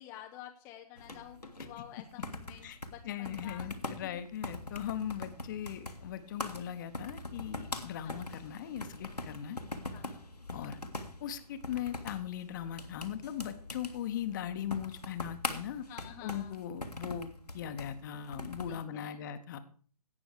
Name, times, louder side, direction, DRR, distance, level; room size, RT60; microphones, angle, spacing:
voice 1, 0.0-4.1 8.0-8.4 9.9-10.3 10.6-10.9 14.3-14.5 15.9-16.6 18.7-19.2, left 11 dB, 15° left, 3 dB, 0.6 m, -50 dB
sound 1, 1.0-18.8, left 2 dB, 90° left, 1.5 m, -43 dB
voice 2, 3.0-9.6 10.5-10.8 11.2-15.8 16.2-19.6, left 10 dB, 30° left, 10 dB, 1.0 m, -39 dB
17.0 x 6.2 x 4.9 m, 0.43 s
figure-of-eight pair, 135°, 20 cm